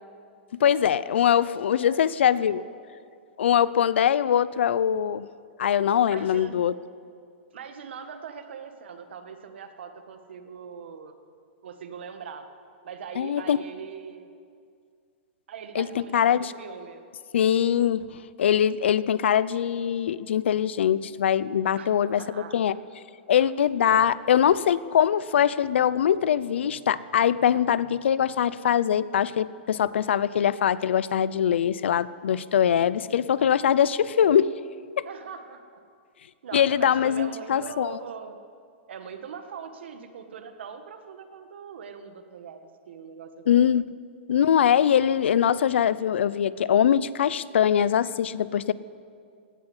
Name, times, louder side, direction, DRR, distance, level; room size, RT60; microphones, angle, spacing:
voice 1, 0.6-2.6 3.4-5.3 5.6-6.7 13.2-13.6 15.8-16.5 17.3-18.0 18.4-22.7 23.3-34.5 35.0-35.1 36.5-38.0 43.5-43.8 44.3-48.7, left 9 dB, 85° left, 18 dB, 0.6 m, -22 dB
voice 2, 1.8-2.7 6.1-6.5 7.5-11.2 11.6-12.5 12.8-14.3 15.5-17.0 21.7-21.9 22.2-22.6 23.4-23.5 35.0-35.6 36.4-38.4 38.9-43.7, right 6 dB, 75° right, 7 dB, 1.6 m, -41 dB
17.5 x 9.8 x 8.1 m, 2.3 s
hypercardioid pair, 160°, 6 cm